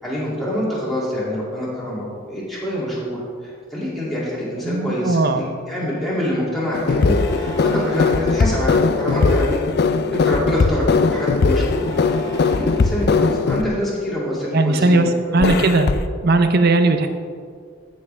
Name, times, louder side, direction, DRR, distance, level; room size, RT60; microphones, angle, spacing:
voice 1, 0.0-11.9 12.4-15.6, left 1 dB, ahead, -9 dB, 2.4 m, -26 dB
voice 2, 4.6-5.5 14.5-15.9 16.2-17.1, right 2 dB, 55° right, 8 dB, 0.7 m, -17 dB
sound 1, 6.7-13.7 15.4-16.0, left 4 dB, 55° left, 0.4 m, -19 dB
sound 2, 7.0-8.4 9.1-9.7 11.6-13.1, right 2 dB, 20° left, 2.1 m, -37 dB
14.0 x 6.1 x 3.4 m, 2.1 s
head